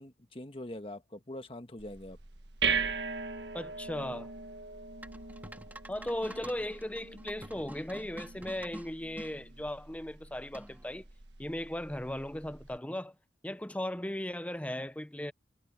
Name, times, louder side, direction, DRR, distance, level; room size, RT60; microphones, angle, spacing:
voice 1, 0.0-2.2, left 1 dB, 30° left, 1.5 m, -43 dB
sound 1, 1.8-12.8, right 5 dB, 75° right, 1.5 m, -39 dB
voice 2, 3.5-4.3 5.9-11.0 11.4-13.1 13.4-15.3, left 1 dB, 10° left, 0.7 m, -37 dB
sound 2, 5.0-9.3 10.5-11.0, right 1 dB, 10° right, 3.4 m, -48 dB
head